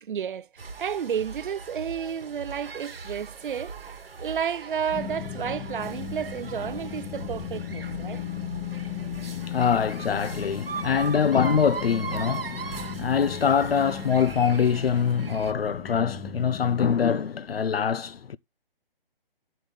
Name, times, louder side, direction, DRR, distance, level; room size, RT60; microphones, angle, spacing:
voice 1, 0.0-3.9 4.2-8.2 10.9-11.0, right 8 dB, 60° right, 0.5 m, -32 dB
sound 1, 0.6-15.5, right 5 dB, 75° right, 1.3 m, -39 dB
sound 2, 4.9-16.9, left 8 dB, 15° left, 0.7 m, -37 dB
voice 2, 9.4-18.4, left 7 dB, 85° left, 0.5 m, -24 dB
13.5 x 5.7 x 3.4 m
figure-of-eight pair, 140°, 29 cm